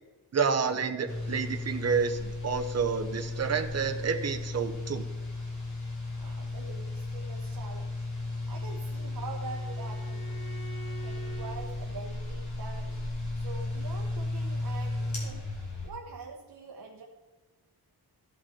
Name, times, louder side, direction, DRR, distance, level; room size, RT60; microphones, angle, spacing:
voice 1, 0.3-5.0, right 6 dB, 40° right, 6 dB, 0.8 m, -29 dB
sound 1, 1.1-15.9, left 2 dB, 45° left, 3.3 m, -35 dB
voice 2, 6.2-8.0 8.5-10.3 11.0-13.0 13.4-15.5 15.8-17.0, right 4 dB, 60° right, 0 dB, 1.1 m, -44 dB
Bowed string instrument, 8.1-11.6, right 6 dB, 60° left, 2.8 m, -48 dB
15.5 x 5.8 x 4.3 m, 1.2 s
wide cardioid pair, 155°, 40 cm